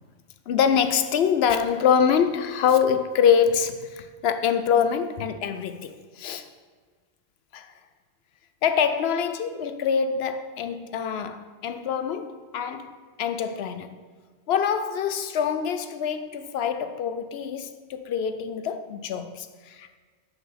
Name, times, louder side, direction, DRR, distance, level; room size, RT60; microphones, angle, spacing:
voice 1, 0.5-6.5 7.5-7.7 8.6-14.0 14.5-19.9, left 7 dB, 75° left, 0.8 m, -25 dB
6.4 x 4.7 x 5.7 m
omnidirectional pair, 1.1 m